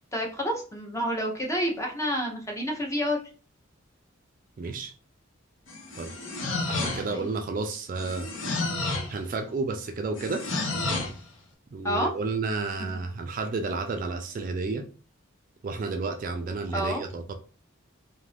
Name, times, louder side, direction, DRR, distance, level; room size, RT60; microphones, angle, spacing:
voice 1, 0.1-3.2 7.0-7.3 11.8-12.1 16.7-17.0, equal, 15° left, 1 dB, 0.6 m, -29 dB
voice 2, 4.6-4.9 5.9-6.1 6.7-8.3 9.1-10.4 11.7-14.8 15.6-17.3, right 3 dB, 40° right, 6 dB, 0.3 m, -31 dB
sound 1, 5.7-7.3 8.0-9.2 10.2-11.2, left 3 dB, 70° left, 0.8 m, -31 dB
2.6 x 2.4 x 3.3 m, 0.38 s
head